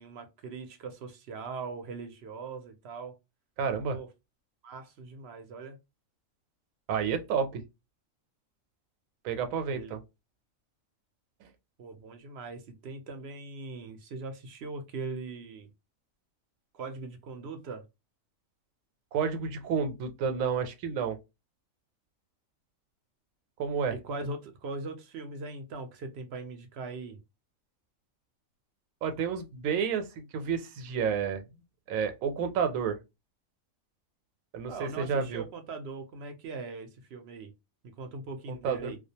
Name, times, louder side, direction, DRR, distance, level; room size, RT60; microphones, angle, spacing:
voice 1, 0.0-3.2 3.9-4.1 4.6-5.8 9.7-10.0 11.8-15.7 16.7-17.8 23.9-27.2 34.7-37.5 37.8-39.0, right 3 dB, 60° right, 0.7 m, -40 dB
voice 2, 3.6-4.0 6.9-7.6 9.2-10.0 19.1-21.2 23.6-23.9 29.0-31.4 31.9-33.0 34.5-35.4 38.6-38.9, right 6 dB, 80° right, 1.0 m, -30 dB
2.3 x 2.2 x 2.7 m
omnidirectional pair, 1.4 m